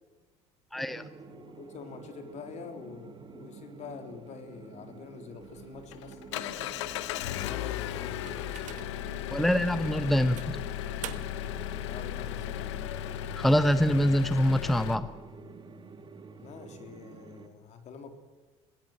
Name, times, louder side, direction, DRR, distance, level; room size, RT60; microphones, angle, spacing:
voice 1, 0.7-1.0 9.3-10.6 13.3-15.1, equal, ahead, 12 dB, 0.9 m, -25 dB
sound 1, 0.7-17.5, right 4 dB, 35° right, 2.6 m, -48 dB
voice 2, 1.3-6.7 7.4-8.8 11.9-12.9 16.4-18.1, left 5 dB, 50° left, 6 dB, 3.6 m, -46 dB
Engine, 5.4-15.0, left 12 dB, 85° left, 0.9 m, -36 dB
sound 2, 7.4-9.1 9.6-9.8 10.4-11.6, right 12 dB, 60° right, 1.4 m, -46 dB
24.5 x 17.5 x 8.0 m, 1.3 s
hypercardioid pair, 75°, 15 cm